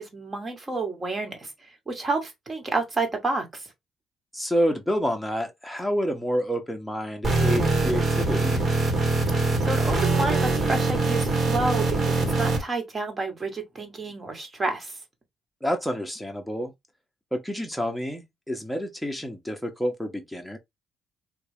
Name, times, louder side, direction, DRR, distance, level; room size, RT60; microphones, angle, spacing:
voice 1, 0.0-1.5 1.9-3.7 9.4-15.0, right 3 dB, 30° right, 1.5 m, -30 dB
voice 2, 4.3-8.6 15.6-16.7 17.3-20.6, equal, ahead, 1.0 m, -28 dB
sound 1, 7.2-12.6, right 3 dB, 50° right, 1.3 m, -23 dB
3.4 x 2.3 x 3.3 m
cardioid pair, 90°, 0 cm